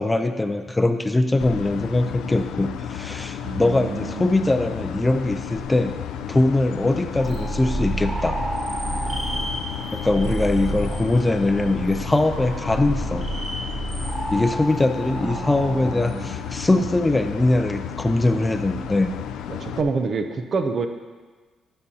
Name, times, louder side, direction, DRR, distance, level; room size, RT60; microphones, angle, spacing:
voice 1, 0.0-5.9 6.3-8.4 9.9-13.3 14.3-19.1, left 2 dB, 15° left, 8 dB, 0.5 m, -22 dB
sound 1, 1.4-19.8, left 9 dB, 85° left, 0.4 m, -33 dB
voice 2, 3.4-4.3 15.1-16.3 19.5-20.9, right 4 dB, 50° right, 7 dB, 0.6 m, -28 dB
sound 2, 7.2-16.8, right 1 dB, 30° right, 2.2 m, -30 dB
11.5 x 6.8 x 2.8 m, 1.4 s
cardioid pair, 90°, 0 cm